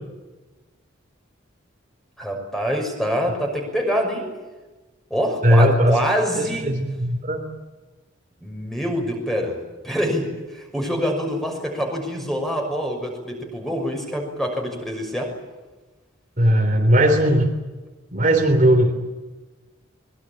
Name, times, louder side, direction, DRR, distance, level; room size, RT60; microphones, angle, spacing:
voice 1, 2.2-4.3 5.1-6.6 8.4-9.6 9.8-15.3, equal, ahead, 2 dB, 6.2 m, -25 dB
voice 2, 5.4-6.0 6.4-7.4 16.4-17.5 18.1-18.9, equal, 40° right, 3 dB, 3.5 m, -17 dB
24.0 x 22.5 x 8.9 m, 1.2 s
head